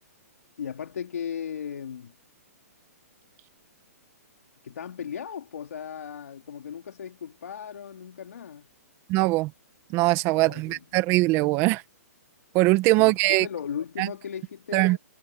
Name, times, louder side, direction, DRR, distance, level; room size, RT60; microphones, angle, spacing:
voice 1, 0.6-2.1 4.6-8.7 10.3-10.8 13.0-15.0, left 8 dB, 75° left, 3.8 m, -36 dB
voice 2, 9.1-9.5 9.9-11.8 12.5-13.4 14.0-14.1 14.7-15.0, right 21 dB, 30° right, 1.4 m, -21 dB
hypercardioid pair, 150°, 9 cm